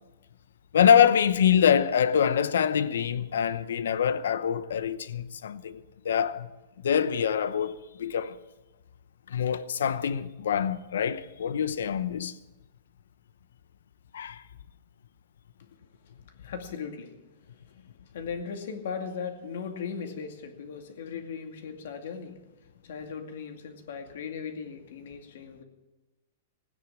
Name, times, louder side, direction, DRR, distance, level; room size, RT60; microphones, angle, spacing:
voice 1, 0.7-6.5 6.8-8.4 9.3-12.3 14.1-14.4, left 8 dB, 90° left, 0.8 m, -25 dB
voice 2, 16.4-17.1 18.1-22.4 22.8-25.6, left 6 dB, 70° left, 2.3 m, -37 dB
17.0 x 9.6 x 7.2 m
supercardioid pair, 160°, 0 cm